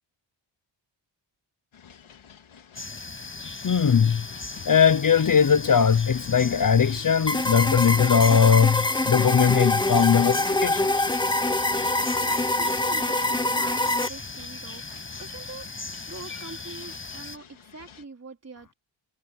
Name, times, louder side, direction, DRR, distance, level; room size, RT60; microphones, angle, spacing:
sound 1, 1.7-18.0, left 8 dB, 90° left, 3.3 m, -49 dB
sound 2, 2.8-17.4, left 3 dB, 25° left, 6.8 m, -38 dB
voice 1, 3.6-4.3 4.6-10.9, left 7 dB, 45° left, 0.9 m, -20 dB
sound 3, 7.3-14.1, left 2 dB, 10° left, 1.0 m, -24 dB
voice 2, 11.5-18.7, right 3 dB, 30° right, 4.2 m, -43 dB
wide cardioid pair, 110°, 47 cm